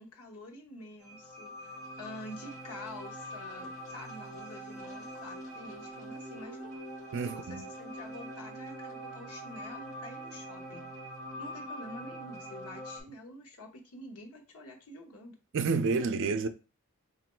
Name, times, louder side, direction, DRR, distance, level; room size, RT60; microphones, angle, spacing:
voice 1, 0.0-6.7 7.2-10.9 11.4-15.4, left 1 dB, 85° left, 0.9 m, -47 dB
sound 1, 1.0-13.0, equal, 15° left, 1.3 m, -43 dB
voice 2, 7.1-7.6 15.5-16.5, right 4 dB, 55° right, 0.4 m, -29 dB
3.0 x 2.5 x 4.3 m
head